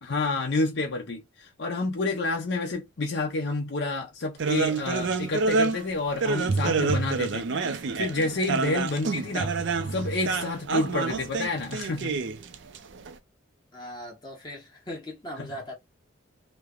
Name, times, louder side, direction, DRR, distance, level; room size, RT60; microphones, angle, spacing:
voice 1, 0.0-9.5 9.9-12.2 15.4-15.5, left 2 dB, 60° left, 0.7 m, -29 dB
sound 1, 4.4-13.1, right 4 dB, 60° right, 0.4 m, -27 dB
voice 2, 13.7-15.7, equal, 20° left, 0.9 m, -39 dB
3.1 x 2.1 x 2.3 m
head